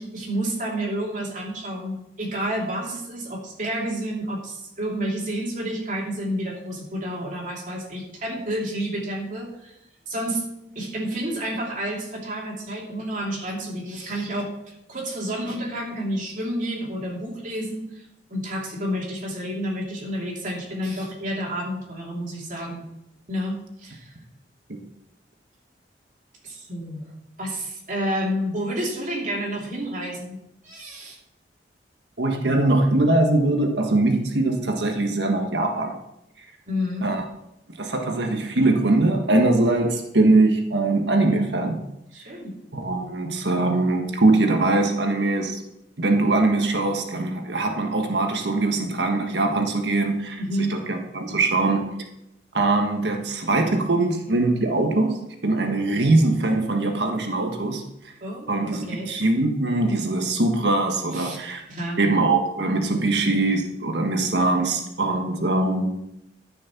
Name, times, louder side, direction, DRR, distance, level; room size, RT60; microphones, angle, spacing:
voice 1, 0.0-9.7 10.1-10.4 10.7-18.0 18.3-22.8 23.3-24.2 26.4-27.1 27.4-30.4 30.6-31.2 36.7-37.1 42.1-42.5 50.4-50.8 58.2-59.1 61.1-61.4 61.7-62.0, equal, 45° right, -1 dB, 2.8 m, -30 dB
voice 2, 32.2-36.0 37.0-37.2 37.8-41.9 42.7-45.7 46.0-50.4 50.7-52.0 52.5-57.9 58.5-61.6 62.0-65.9, right 2 dB, 75° right, 4 dB, 1.5 m, -22 dB
13.5 x 6.5 x 6.0 m, 0.83 s
head